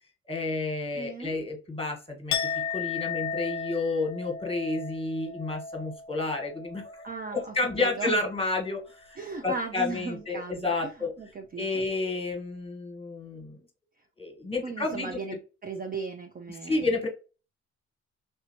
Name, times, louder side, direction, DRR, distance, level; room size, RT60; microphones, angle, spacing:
voice 1, 0.3-7.0 7.3-11.1 11.6-13.6 14.2-15.4 16.6-17.1, left 3 dB, 20° left, 2 dB, 1.3 m, -31 dB
voice 2, 1.0-1.4 7.0-8.2 9.2-10.9 11.2-11.8 14.6-15.4 15.6-16.8, right 4 dB, 30° right, 5 dB, 0.5 m, -37 dB
Chink clink, 2.3-8.2 8.5-8.9, left 6 dB, 75° left, 0.5 m, -36 dB
3.4 x 2.7 x 2.8 m, 0.32 s
cardioid pair, 90°, 30 cm